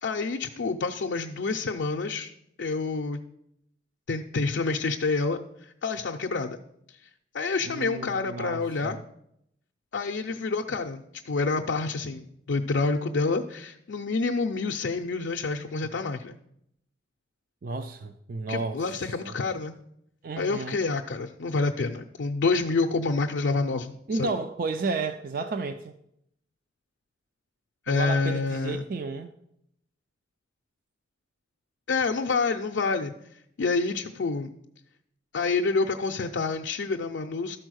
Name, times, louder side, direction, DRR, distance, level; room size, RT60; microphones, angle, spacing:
voice 1, 0.0-2.3 2.6-3.2 4.1-6.6 7.3-9.0 9.9-16.4 18.5-19.7 20.4-24.3 27.9-28.8 31.9-34.5 35.3-37.6, left 4 dB, 65° left, 4 dB, 0.5 m, -28 dB
voice 2, 7.6-9.0 17.6-18.8 19.2-19.3 20.2-20.8 24.1-25.9 27.9-29.3, right 3 dB, 45° right, 9 dB, 0.4 m, -32 dB
12.5 x 4.5 x 6.3 m, 0.77 s
head